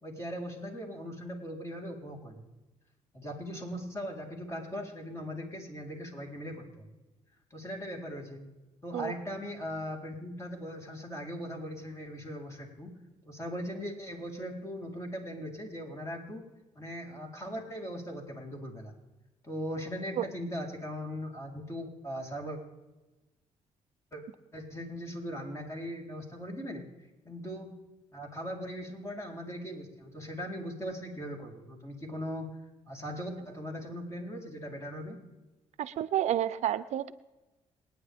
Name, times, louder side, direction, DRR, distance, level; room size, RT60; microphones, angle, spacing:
voice 1, 0.0-2.5 3.1-6.9 7.5-8.4 8.8-12.9 13.2-16.4 16.8-18.9 19.4-22.6 24.1-24.2 24.5-26.8 27.2-27.7 28.1-32.5 32.9-35.2, equal, 25° left, 0 dB, 4.1 m, -39 dB
voice 2, 35.8-37.1, right 11 dB, 75° right, 15 dB, 0.6 m, -30 dB
27.5 x 9.6 x 3.6 m, 1.1 s
cardioid pair, 95°, 12 cm